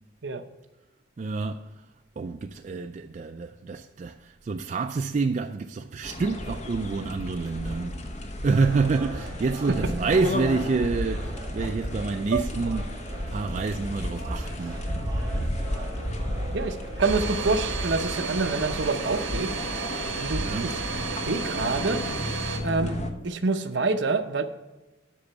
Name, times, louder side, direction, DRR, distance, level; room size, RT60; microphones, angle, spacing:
voice 1, 1.2-1.7 2.2-8.0 8.4-12.9 13.3-14.8 20.4-20.7, right 4 dB, 35° right, 0.3 m, -28 dB
sound 1, 6.0-23.1, left 1 dB, 35° left, 0.9 m, -33 dB
sound 2, 8.5-21.9, right 2 dB, 20° right, 2.5 m, -43 dB
voice 2, 16.5-19.5 20.2-20.8 21.3-22.0 22.6-23.0 23.2-24.4, right 3 dB, 60° right, 0.7 m, -27 dB
Domestic sounds home sounds, 17.0-22.6, right 5 dB, 75° right, 1.3 m, -33 dB
8.5 x 6.0 x 6.7 m
head